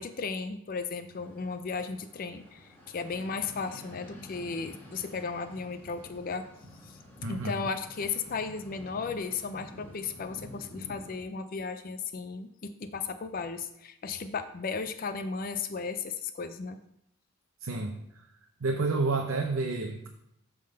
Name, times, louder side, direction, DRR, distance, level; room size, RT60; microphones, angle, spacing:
voice 1, 0.0-6.4 6.8-7.0 7.3-16.8, left 5 dB, 40° left, 10 dB, 0.4 m, -35 dB
sound 1, 1.1-11.2, left 1 dB, 10° left, 1.6 m, -50 dB
voice 2, 7.2-7.6 17.6-18.3 18.6-20.1, right 3 dB, 65° right, 2 dB, 0.7 m, -30 dB
8.5 x 3.8 x 6.6 m, 0.79 s
head